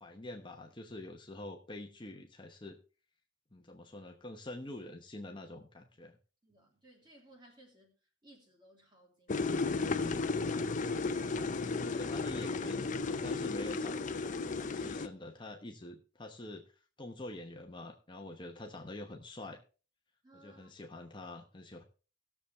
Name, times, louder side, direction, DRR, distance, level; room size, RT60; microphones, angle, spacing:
voice 1, 0.0-2.8 3.5-6.2 11.3-14.0 14.5-16.7 17.0-19.6 20.4-21.8, left 1 dB, 25° left, 0.9 m, -46 dB
voice 2, 6.4-7.9 8.2-10.3 20.2-20.7, right 1 dB, 25° right, 3.0 m, -61 dB
sound 1, 9.3-15.1, left 3 dB, 40° left, 0.6 m, -34 dB
18.0 x 7.0 x 3.2 m
head